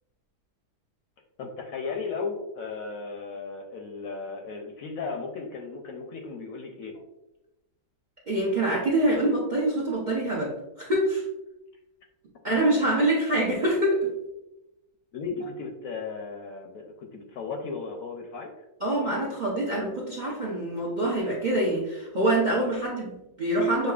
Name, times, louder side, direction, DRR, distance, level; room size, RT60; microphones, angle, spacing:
voice 1, 1.4-7.0 15.1-18.5, left 4 dB, 70° left, 2 dB, 0.9 m, -35 dB
voice 2, 8.3-11.2 12.4-14.1 18.8-23.9, right 1 dB, 45° right, -4 dB, 0.6 m, -25 dB
6.5 x 2.6 x 2.3 m, 0.93 s
omnidirectional pair, 1.8 m